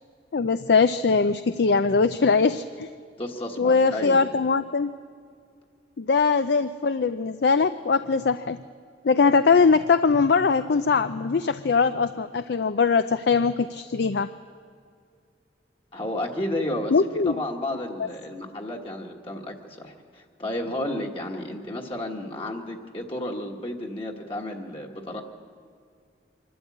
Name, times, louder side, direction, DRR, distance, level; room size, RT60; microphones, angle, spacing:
voice 1, 0.3-2.9 3.6-4.9 6.0-8.6 9.0-14.3 16.9-17.4, left 4 dB, 65° left, 11 dB, 0.4 m, -21 dB
voice 2, 3.2-4.2 15.9-16.9 17.2-25.2, left 1 dB, 30° left, 1 dB, 1.4 m, -32 dB
25.0 x 12.5 x 8.5 m, 2.2 s
head